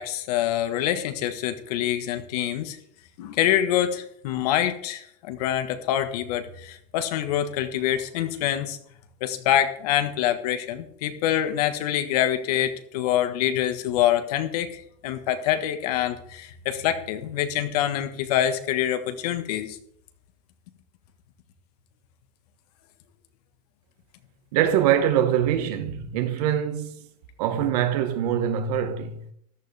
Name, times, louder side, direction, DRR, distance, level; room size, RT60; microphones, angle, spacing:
voice 1, 0.0-2.8 3.2-8.8 9.2-19.8, left 11 dB, 70° left, 1.5 m, -25 dB
voice 2, 24.5-27.1 27.4-29.2, right 10 dB, 70° right, 1.5 m, -23 dB
14.0 x 11.5 x 3.5 m
supercardioid pair, 160°, 21 cm